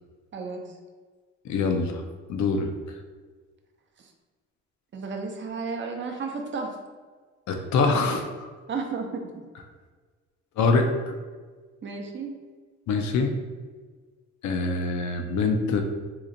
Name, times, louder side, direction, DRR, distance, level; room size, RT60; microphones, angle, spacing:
voice 1, 0.3-0.6 4.9-6.8 8.7-9.4 11.8-12.4, right 4 dB, 40° right, 2 dB, 0.6 m, -33 dB
voice 2, 1.4-2.0 2.3-2.7 7.5-8.5 10.6-11.2 12.9-13.3 14.4-15.8, left 4 dB, 70° left, 5 dB, 0.6 m, -24 dB
2.9 x 2.4 x 3.8 m, 1.4 s
cardioid pair, 90°, 30 cm